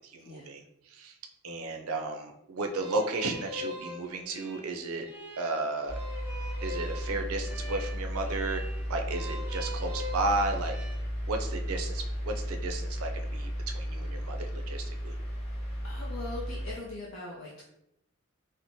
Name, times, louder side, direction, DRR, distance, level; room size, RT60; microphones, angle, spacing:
voice 1, 0.1-0.6 0.9-1.1 1.4-5.1 5.4-6.0 6.6-8.6 8.9-10.8 11.3-15.1, right 2 dB, 80° right, 4 dB, 0.4 m, -33 dB
sound 1, 2.7-10.9, left 2 dB, 10° right, 0.4 m, -43 dB
sound 2, 5.9-16.7, equal, 30° left, 0.9 m, -34 dB
voice 2, 15.8-17.6, left 2 dB, 60° left, -4 dB, 0.4 m, -41 dB
3.0 x 2.0 x 2.6 m, 0.80 s
head